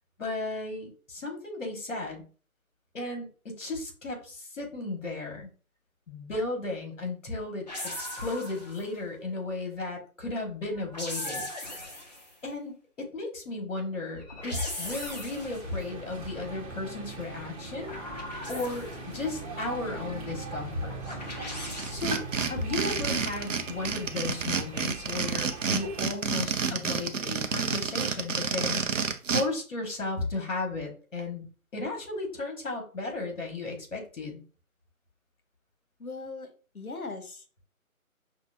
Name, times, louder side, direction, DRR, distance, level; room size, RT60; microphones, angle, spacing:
voice 1, 0.2-2.2 2.9-5.5 6.1-7.7 8.0-11.5 12.4-18.0 18.5-18.9 19.1-21.0 21.9-28.8 29.3-31.5 31.7-34.4, left 2 dB, 60° left, 1 dB, 1.8 m, -34 dB
sound 1, 7.7-8.9 10.7-12.3 14.1-15.7 17.6-19.2 21.0-21.9, left 1 dB, 30° left, 0.7 m, -39 dB
sound 2, 14.8-26.0, right 2 dB, 25° right, 1.0 m, -41 dB
sound 3, 21.8-29.4, right 5 dB, 65° right, 0.6 m, -29 dB
voice 2, 36.0-37.6, left 3 dB, 80° left, 6 dB, 1.1 m, -40 dB
5.8 x 2.2 x 2.6 m, 0.37 s
figure-of-eight pair, 145°, 43 cm